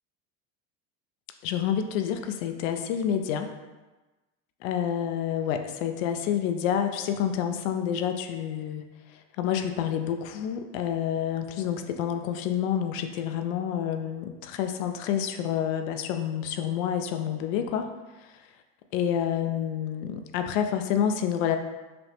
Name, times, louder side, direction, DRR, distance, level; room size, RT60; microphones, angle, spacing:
voice 1, 1.4-3.5 4.6-8.9 9.4-17.9 18.9-21.6, left 9 dB, 75° left, 6 dB, 0.5 m, -28 dB
5.9 x 2.0 x 3.3 m, 1.2 s
supercardioid pair, 110°, 40 cm